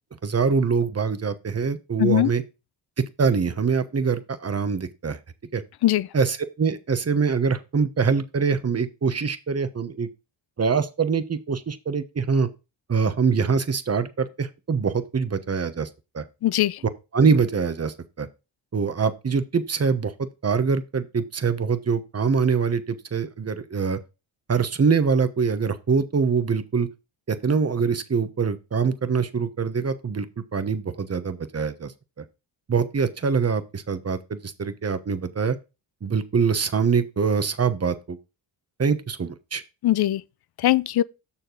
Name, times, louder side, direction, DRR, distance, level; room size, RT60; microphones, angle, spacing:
voice 1, 0.2-2.4 3.0-5.2 5.5-5.6 6.1-10.1 10.6-12.5 12.9-15.9 16.1-16.2 17.1-18.3 18.7-24.0 24.5-26.9 27.3-31.9 32.7-35.6 36.0-38.2 38.8-39.6, right 5 dB, 30° right, 1.1 m, -24 dB
voice 2, 2.0-2.3 5.8-6.1 16.4-16.8 39.8-40.2 40.6-41.0, left 14 dB, 50° left, 0.6 m, -20 dB
7.1 x 6.4 x 3.9 m
supercardioid pair, 55°, 49 cm